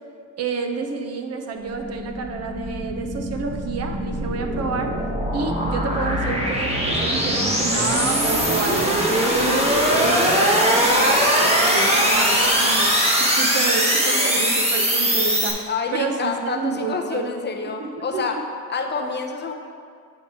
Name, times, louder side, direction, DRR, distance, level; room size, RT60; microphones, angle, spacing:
voice 1, 0.4-4.9 5.3-12.9 13.2-15.6 15.9-17.3 17.8-18.4, right 4 dB, 45° right, 5 dB, 0.7 m, -29 dB
sound 1, 1.6-15.5, equal, 20° right, 1.2 m, -21 dB
voice 2, 13.8-14.3 15.7-18.4 18.7-19.5, left 4 dB, 30° left, 3 dB, 0.6 m, -28 dB
8.3 x 3.3 x 4.3 m, 2.2 s
supercardioid pair, 95°, 34 cm